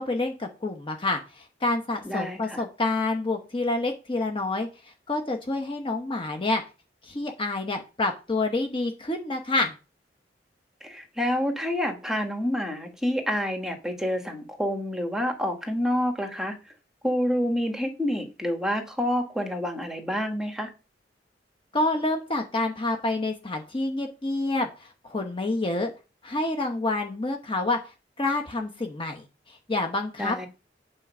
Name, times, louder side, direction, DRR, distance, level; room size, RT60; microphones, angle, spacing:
voice 1, 0.0-4.7 5.1-6.6 7.0-9.7 21.7-25.9 26.2-27.8 28.2-30.5, left 2 dB, 30° left, 1.0 m, -28 dB
voice 2, 2.0-2.6 10.8-16.6 17.0-20.7 30.2-30.5, equal, 5° right, 1.6 m, -28 dB
8.5 x 4.6 x 6.1 m
head